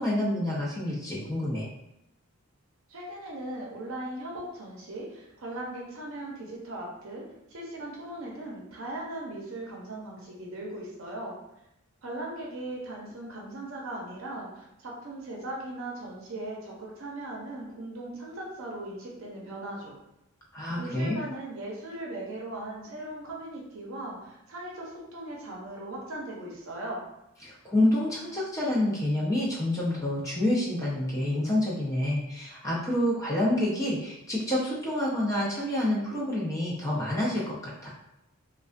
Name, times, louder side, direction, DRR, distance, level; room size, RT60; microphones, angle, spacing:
voice 1, 0.0-1.7 20.5-21.2 27.4-37.9, left 1 dB, 15° left, -6 dB, 0.4 m, -28 dB
voice 2, 2.9-7.2 7.5-11.4 12.0-19.9 20.8-27.0, right 1 dB, 70° right, -2 dB, 0.6 m, -38 dB
2.3 x 2.2 x 2.4 m, 0.87 s
head